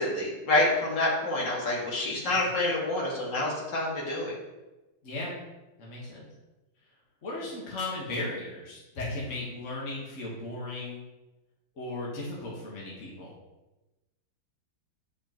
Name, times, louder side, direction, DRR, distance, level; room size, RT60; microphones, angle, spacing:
voice 1, 0.0-4.3, left 2 dB, 65° left, -6 dB, 2.8 m, -27 dB
voice 2, 5.8-6.3 7.2-11.0 11.8-13.3, left 2 dB, 40° left, -5 dB, 1.6 m, -36 dB
10.0 x 5.1 x 3.0 m, 1.1 s
omnidirectional pair, 2.2 m